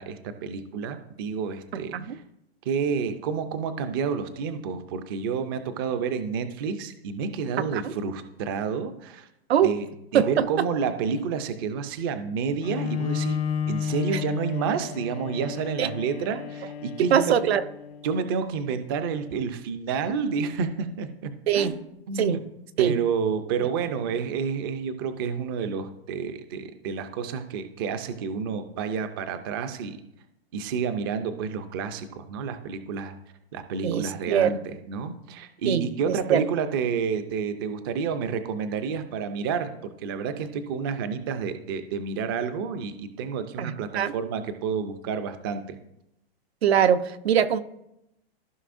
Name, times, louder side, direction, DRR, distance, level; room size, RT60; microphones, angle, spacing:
voice 1, 0.0-2.2 2.7-9.3 9.6-9.9 10.1-13.4 13.7-17.3 18.0-21.8 22.1-22.4 22.8-30.0 30.5-33.2 33.5-45.8, right 6 dB, 25° right, 10 dB, 0.4 m, -29 dB
voice 2, 1.7-2.2 7.7-7.9 9.5-9.7 10.1-10.6 14.1-14.2 15.8-15.9 17.0-17.6 21.5-21.7 22.2-22.4 22.8-22.9 33.8-34.5 35.7-36.4 43.6-44.1 46.6-47.6, right 9 dB, 80° right, 12 dB, 0.8 m, -23 dB
Bowed string instrument, 12.6-18.3, left 7 dB, 80° left, 1.0 m, -32 dB
15.0 x 5.3 x 2.5 m, 0.82 s
hypercardioid pair, 160°, 31 cm